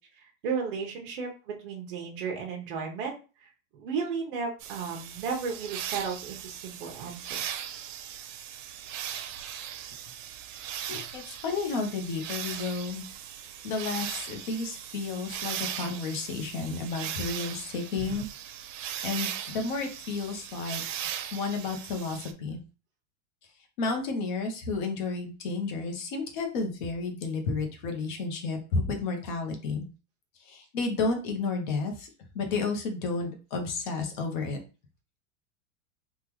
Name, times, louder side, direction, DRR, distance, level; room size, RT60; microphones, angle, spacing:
voice 1, 0.4-3.1 3.4-7.4, right 5 dB, 45° right, 0 dB, 0.8 m, -34 dB
sound 1, 4.6-22.3, right 10 dB, 85° right, 0.6 m, -38 dB
voice 2, 10.8-13.0 13.6-18.3 19.0-20.8 21.3-22.6 23.8-29.9 30.4-32.1 32.3-34.6, left 4 dB, 40° left, 4 dB, 0.8 m, -32 dB
3.6 x 2.4 x 3.0 m, 0.33 s
supercardioid pair, 175°, 37 cm